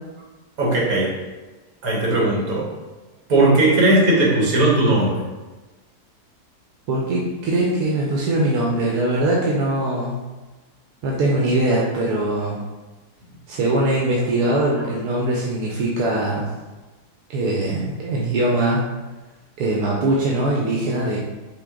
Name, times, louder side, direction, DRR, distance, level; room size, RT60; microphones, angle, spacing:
voice 1, 0.6-1.2 1.8-2.7 3.3-5.2, right 2 dB, 65° right, -3 dB, 1.6 m, -18 dB
voice 2, 6.9-10.2 11.0-12.6 13.5-16.5 17.3-18.8 19.6-21.2, right 1 dB, 85° right, -3 dB, 1.2 m, -21 dB
5.6 x 2.3 x 3.7 m, 1.2 s
omnidirectional pair, 1.7 m